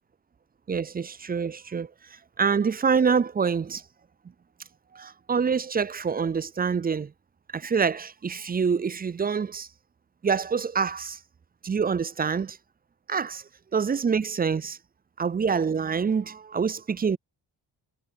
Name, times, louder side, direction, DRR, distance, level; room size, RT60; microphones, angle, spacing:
voice 1, 0.7-1.9 2.4-3.8 4.9-7.1 7.5-9.7 10.2-11.2 11.6-12.6 13.1-13.4 13.7-14.8 15.2-17.2, right 6 dB, 20° right, 0.3 m, -26 dB
cardioid pair, 40°, 46 cm